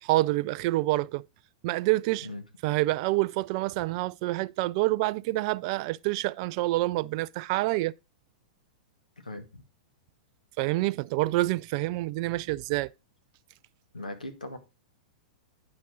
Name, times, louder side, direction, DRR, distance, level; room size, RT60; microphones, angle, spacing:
voice 1, 0.0-1.2 1.6-2.3 2.6-7.9 10.6-12.9, right 19 dB, 45° right, 0.4 m, -27 dB
voice 2, 9.2-9.6 13.9-14.6, left 1 dB, 85° left, 1.6 m, -39 dB
9.7 x 5.4 x 3.8 m
figure-of-eight pair, 100°, 4 cm